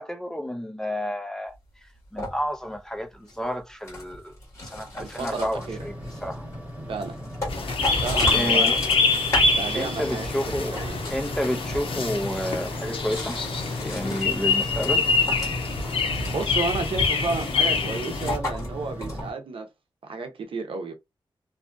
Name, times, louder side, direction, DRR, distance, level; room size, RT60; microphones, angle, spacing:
voice 1, 0.0-1.5 2.1-4.3 4.7-5.9 6.2-6.5 8.3-8.8 9.7-10.8 11.1-13.4 13.8-15.1, equal, 5° left, 0.3 m, -30 dB
sound 1, 1.5-1.6 2.0-2.8 3.3-10.1 10.4-11.7 12.6-19.2, left 1 dB, 30° left, 1.4 m, -36 dB
voice 2, 5.0-5.8 6.9-7.2 8.0-8.8 9.5-11.0 16.3-19.7 20.0-20.9, right 4 dB, 85° right, 0.6 m, -32 dB
sound 2, 5.5-19.3, equal, 15° right, 1.1 m, -37 dB
sound 3, 7.5-18.4, left 4 dB, 90° left, 0.6 m, -25 dB
2.6 x 2.3 x 2.5 m
wide cardioid pair, 165°, 9 cm